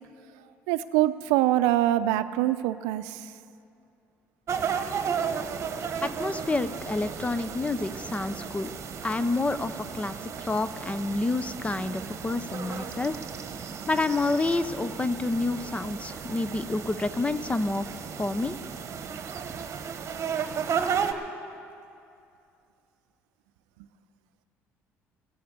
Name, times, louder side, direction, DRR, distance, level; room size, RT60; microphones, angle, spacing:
voice 1, 0.7-3.3, right 14 dB, 85° right, 13 dB, 0.5 m, -24 dB
sound 1, 4.5-21.1, right 7 dB, 45° right, 1.1 m, -34 dB
voice 2, 6.0-8.7 9.0-13.2 13.9-17.9 18.2-18.6, left 2 dB, 20° left, 13 dB, 0.5 m, -28 dB
16.0 x 7.9 x 8.2 m, 2.5 s
supercardioid pair, 75°, 6 cm